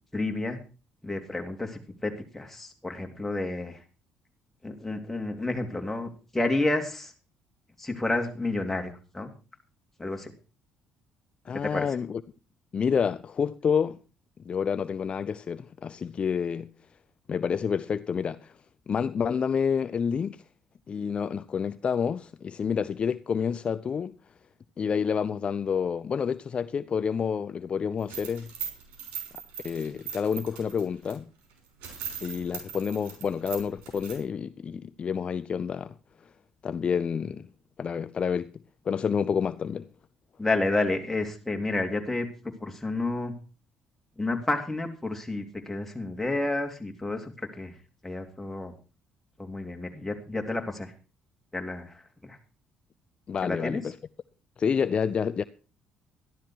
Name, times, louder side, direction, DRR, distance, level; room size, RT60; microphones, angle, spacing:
voice 1, 0.1-0.6 1.0-3.8 4.6-7.1 7.8-9.3 10.0-10.3 11.5-11.9 40.4-42.3 42.6-43.4 44.2-47.7 48.0-48.7 49.4-50.9 51.5-52.4 53.4-53.8, left 2 dB, 10° left, 3.2 m, -30 dB
voice 2, 11.5-12.2 12.7-14.0 14.5-16.7 17.3-18.6 18.9-20.4 20.9-24.2 24.8-28.5 29.6-31.3 32.2-35.9 36.2-36.3 36.6-37.5 37.8-38.5 38.9-39.9 53.3-53.9 54.6-55.4, left 6 dB, 45° left, 0.5 m, -28 dB
sound 1, 28.0-31.1 31.5-31.6 31.8-34.2, right 8 dB, 85° right, 5.9 m, -39 dB
13.5 x 11.5 x 4.6 m
supercardioid pair, 80°, 3 cm